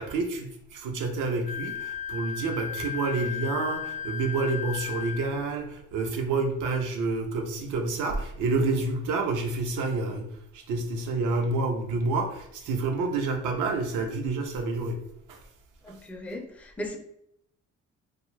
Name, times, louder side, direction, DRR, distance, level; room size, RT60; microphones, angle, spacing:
voice 1, 0.0-15.0 15.3-15.4 15.9-16.0, right 3 dB, 85° right, 3 dB, 0.6 m, -29 dB
Wind instrument woodwind instrument, 1.4-5.3, left 8 dB, 60° left, 0.6 m, -35 dB
voice 2, 15.8-17.0, left 1 dB, 5° left, 3 dB, 0.4 m, -37 dB
2.6 x 2.3 x 3.0 m, 0.74 s
cardioid pair, 90°, 30 cm